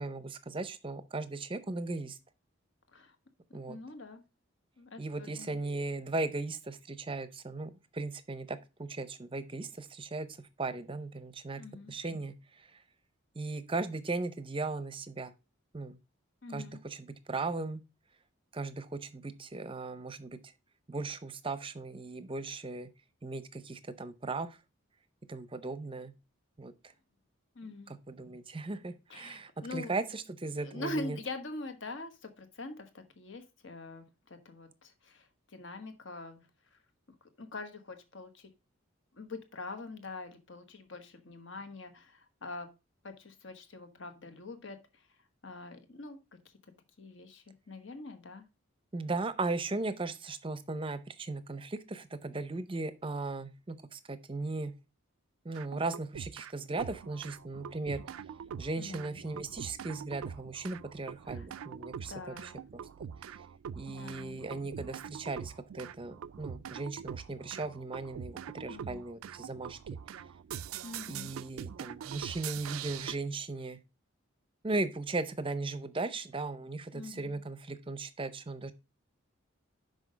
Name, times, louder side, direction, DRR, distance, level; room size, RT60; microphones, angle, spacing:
voice 1, 0.0-2.2 3.5-3.8 5.0-10.3 10.6-11.6 11.9-12.3 13.4-15.3 15.7-16.0 16.5-17.8 18.5-20.4 20.9-22.9 23.2-24.5 25.3-26.1 26.6-26.7 27.9-31.2 48.9-54.7 55.4-58.0 58.6-62.1 62.4-63.1 63.8-69.8 71.1-73.8 74.6-78.7, right 3 dB, 25° right, 0.6 m, -37 dB
voice 2, 3.7-4.2 4.8-5.6 11.6-11.9 16.4-16.8 27.5-27.9 29.1-29.9 30.6-35.3 35.5-36.4 37.4-38.5 39.2-42.7 43.0-44.8 45.4-46.2 47.0-48.4 58.8-59.2 61.3-61.5 62.1-62.6 63.8-64.4 68.7-69.0 70.8-71.3 76.9-77.4, left 2 dB, 60° left, 1.2 m, -44 dB
sound 1, 55.5-56.5 56.8-73.2, right 8 dB, 80° right, 0.3 m, -44 dB
6.1 x 5.1 x 5.1 m
head